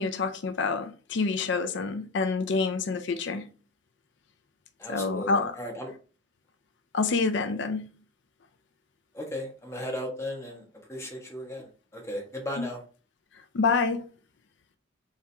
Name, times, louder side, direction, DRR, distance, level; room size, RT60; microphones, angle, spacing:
voice 1, 0.0-3.4 4.9-5.6 6.9-7.9 12.6-12.7 13.5-14.1, left 4 dB, 65° left, 0.5 m, -27 dB
voice 2, 4.8-5.9 9.1-10.6 10.9-12.8, left 1 dB, 15° left, 1.4 m, -36 dB
4.3 x 3.6 x 3.4 m
head